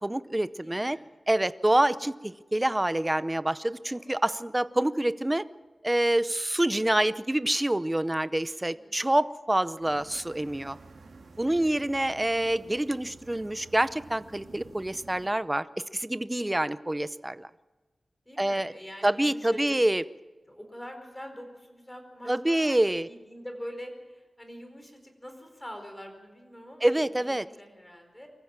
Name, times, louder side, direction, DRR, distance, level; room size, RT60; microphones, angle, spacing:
voice 1, 0.0-1.0 1.3-5.4 5.8-10.8 11.4-15.6 15.9-17.5 18.4-18.7 19.0-20.0 22.3-23.1 26.8-27.4, right 1 dB, 15° right, 14 dB, 0.6 m, -26 dB
voice 2, 0.6-1.1 8.7-9.1 11.5-11.8 18.2-19.8 20.4-28.3, equal, 10° left, 5 dB, 4.7 m, -44 dB
sound 1, 9.8-15.3, right 3 dB, 80° right, 3.1 m, -50 dB
24.0 x 15.0 x 7.4 m, 1.3 s
wide cardioid pair, 90°, 0 cm